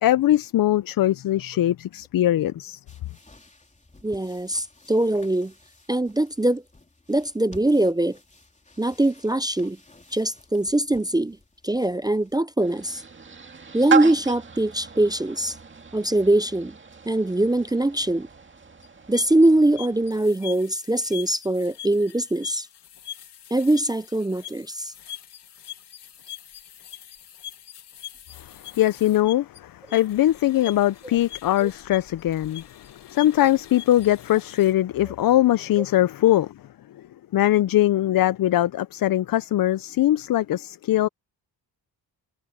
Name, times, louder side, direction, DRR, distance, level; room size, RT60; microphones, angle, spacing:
voice 1, 0.0-2.8 28.4-36.5 37.0-37.1 37.3-41.1, left 13 dB, 55° left, 0.5 m, -21 dB
sound 1, 2.9-12.4, left 2 dB, 15° left, 3.4 m, -53 dB
voice 2, 4.0-5.5 5.9-6.6 7.1-8.2 8.8-9.8 10.1-11.4 11.6-13.0 13.7-15.6 15.9-16.8 17.1-18.3 19.1-22.7 23.5-24.9 31.6-31.7, right 1 dB, 10° right, 0.3 m, -22 dB
sound 2, 12.6-20.2, right 6 dB, 30° right, 2.1 m, -33 dB
sound 3, 18.8-34.7, left 11 dB, 75° left, 2.5 m, -43 dB
wide cardioid pair, 130°, 41 cm